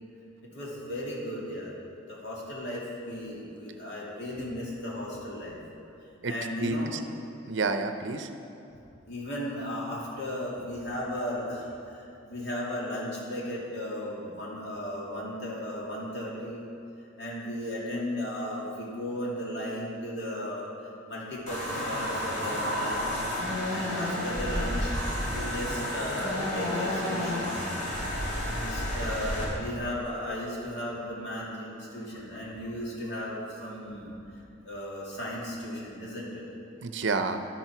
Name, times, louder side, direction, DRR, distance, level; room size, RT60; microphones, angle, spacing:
voice 1, 0.4-1.7 2.1-5.6 6.3-6.9 9.1-16.7 17.2-23.2 23.7-24.9 25.3-27.7 28.6-34.1 34.6-36.4, left 1 dB, 55° left, -5 dB, 2.6 m, -35 dB
voice 2, 6.6-7.0 7.5-8.3 33.6-33.7 36.8-37.5, right 3 dB, 65° right, 8 dB, 0.6 m, -29 dB
sound 1, 21.5-29.4, left 1 dB, 40° left, 3.0 m, -31 dB
11.5 x 7.7 x 5.9 m, 2.6 s
head